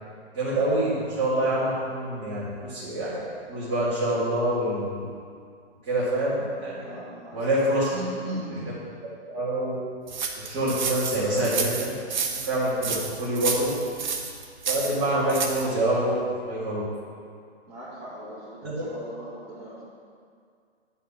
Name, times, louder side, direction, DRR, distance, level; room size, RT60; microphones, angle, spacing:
voice 1, 0.3-3.2 3.5-5.0 5.8-6.8 7.3-7.9 9.3-9.8 10.4-12.0 12.4-13.7 14.7-16.1 16.5-16.8 18.6-18.8, right 1 dB, 25° right, -13 dB, 2.5 m, -26 dB
voice 2, 6.8-7.5 7.9-8.7 17.7-19.8, right 1 dB, 5° right, -16 dB, 2.1 m, -38 dB
sound 1, 10.1-15.7, right 5 dB, 40° right, 1.0 m, -30 dB
10.5 x 4.3 x 7.5 m, 2.2 s
hypercardioid pair, 165°, 34 cm